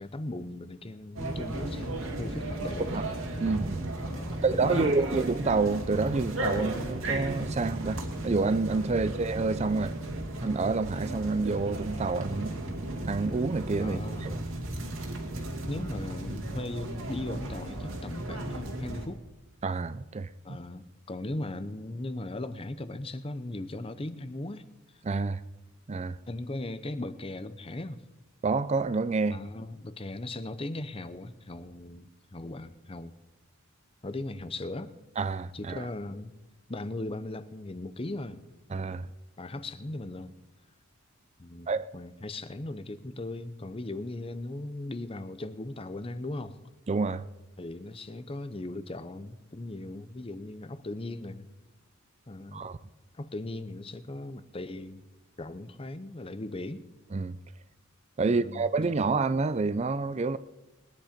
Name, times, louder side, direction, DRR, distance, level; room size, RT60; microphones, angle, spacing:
voice 1, 0.0-3.1 4.1-5.3 13.8-14.4 15.7-19.2 20.4-24.7 26.3-28.0 29.3-33.2 34.0-34.9 35.5-36.3 36.7-38.4 39.4-40.3 41.4-41.7 41.9-46.6 47.6-51.5 52.3-52.7 53.1-55.0 55.4-56.8 58.2-58.7, left 2 dB, 25° left, 0.7 m, -38 dB
sound 1, 1.2-19.1, right 1 dB, 75° right, 2.4 m, -35 dB
voice 2, 3.4-3.9 4.4-9.9 10.4-12.6 13.1-14.3 19.6-20.6 25.0-25.4 25.9-26.2 28.4-29.4 35.2-35.8 38.7-39.1 41.7-41.9 46.9-47.2 52.5-52.8 57.1-57.4 58.2-60.4, right 3 dB, 30° right, 0.4 m, -28 dB
20.0 x 10.5 x 5.1 m
head